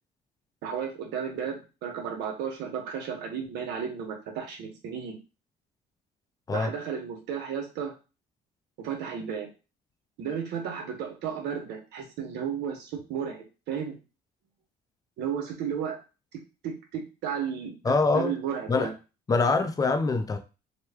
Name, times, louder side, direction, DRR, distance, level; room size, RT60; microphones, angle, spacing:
voice 1, 0.6-5.2 6.5-7.9 8.8-9.5 10.2-14.0 15.2-16.0 16.6-18.9, right 7 dB, 85° right, 2 dB, 1.0 m, -33 dB
voice 2, 17.8-18.3 18.7-18.9 19.3-20.4, left 3 dB, 20° left, 7 dB, 0.5 m, -24 dB
3.0 x 2.2 x 3.4 m, 0.30 s
cardioid pair, 110°, 17 cm